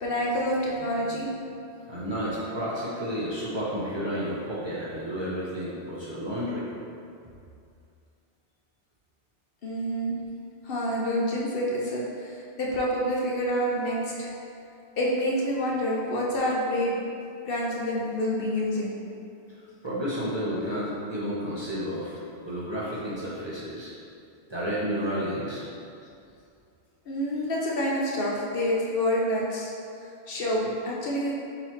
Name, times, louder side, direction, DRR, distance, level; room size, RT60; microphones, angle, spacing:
voice 1, 0.0-1.3 2.0-2.1 9.6-10.2 10.6-14.3 15.0-16.9 17.4-18.9 27.1-29.7 30.0-31.3, equal, 60° left, -3 dB, 0.8 m, -27 dB
voice 2, 1.9-6.6 19.8-22.2 22.5-23.9 24.5-25.6, equal, 30° right, -9 dB, 0.7 m, -31 dB
3.9 x 2.9 x 4.4 m, 2.5 s
omnidirectional pair, 1.1 m